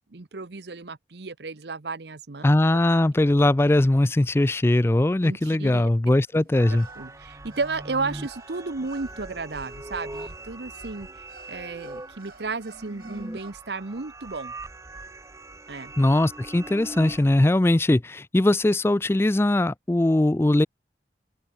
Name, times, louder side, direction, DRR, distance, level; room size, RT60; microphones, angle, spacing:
voice 1, 0.1-2.4 5.2-5.9 7.0-14.5 15.7-15.9, right 3 dB, 70° right, 1.0 m, -33 dB
voice 2, 2.4-6.9 16.0-20.7, left 1 dB, 15° left, 0.3 m, -20 dB
sound 1, 6.2-13.5, right 4 dB, 55° right, 1.9 m, -53 dB
sound 2, 6.6-17.2, right 2 dB, 15° right, 1.0 m, -41 dB
open air
head